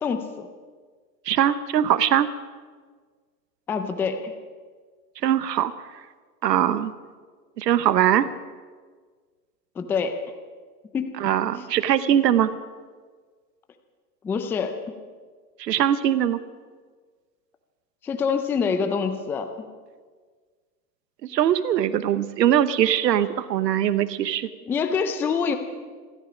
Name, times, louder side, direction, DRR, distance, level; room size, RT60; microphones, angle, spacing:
voice 1, 0.0-0.5 3.7-4.3 9.8-10.2 10.9-11.2 14.2-14.9 18.0-19.7 24.7-25.6, left 5 dB, 5° left, 7 dB, 0.4 m, -26 dB
voice 2, 1.3-2.3 5.2-5.7 6.4-6.9 7.6-8.3 11.2-12.5 15.6-16.4 21.2-24.5, right 10 dB, 85° right, 14 dB, 1.0 m, -21 dB
27.5 x 10.0 x 5.1 m, 1.5 s
hypercardioid pair, 130°, 48 cm